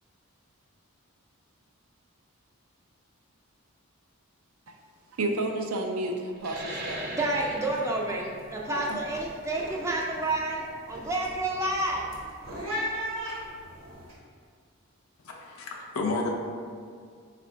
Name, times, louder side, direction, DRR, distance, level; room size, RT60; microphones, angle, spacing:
voice 1, 5.2-7.3, right 2 dB, 85° right, 0.5 m, -31 dB
sound 1, 6.4-11.5, right 1 dB, 45° right, 0.8 m, -41 dB
sound 2, 6.9-7.1 7.3-7.8 8.2-14.1, equal, 65° right, 1.1 m, -38 dB
voice 2, 7.2-12.1, right 2 dB, 15° right, 0.3 m, -29 dB
voice 3, 15.4-16.3, left 3 dB, 75° left, 0.5 m, -30 dB
4.2 x 2.5 x 4.4 m
head